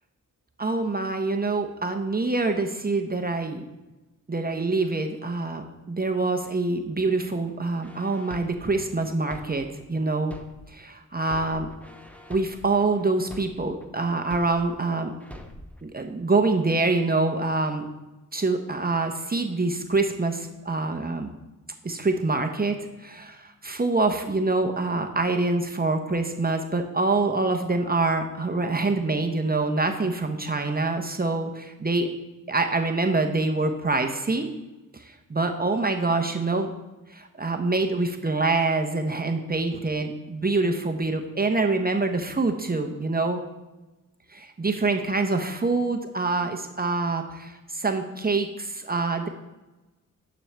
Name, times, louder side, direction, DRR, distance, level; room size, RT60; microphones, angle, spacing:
voice 1, 0.6-3.6 4.3-10.3 10.7-11.7 12.3-15.1 15.8-17.9 18.3-21.3 21.8-32.1 32.5-34.5 34.9-36.7 37.1-43.4 44.3-49.3, right 3 dB, 30° right, 4 dB, 0.8 m, -25 dB
sound 1, 7.8-10.8 11.2-14.8 15.2-15.8, equal, 5° left, 0.9 m, -44 dB
9.8 x 6.2 x 3.4 m, 1.1 s
cardioid pair, 55°, 32 cm